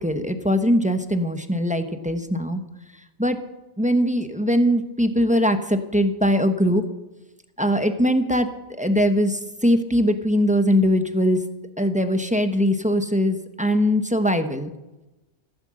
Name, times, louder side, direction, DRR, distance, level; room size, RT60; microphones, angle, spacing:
voice 1, 0.0-2.6 3.2-3.4 3.8-6.8 7.6-8.5 8.8-11.4 11.8-14.7, equal, 5° right, 7 dB, 1.0 m, -21 dB
15.5 x 9.8 x 7.6 m, 1.0 s
omnidirectional pair, 1.2 m